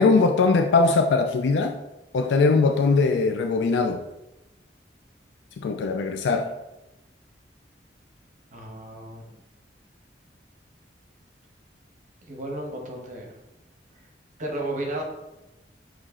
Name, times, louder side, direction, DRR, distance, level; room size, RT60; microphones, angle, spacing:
voice 1, 0.0-1.7 2.1-4.0 5.6-6.5, left 4 dB, 75° left, 6 dB, 0.3 m, -21 dB
voice 2, 8.5-9.3 12.2-13.3 14.4-15.0, right 1 dB, 45° right, 1 dB, 0.9 m, -33 dB
6.3 x 3.1 x 2.4 m, 0.96 s
head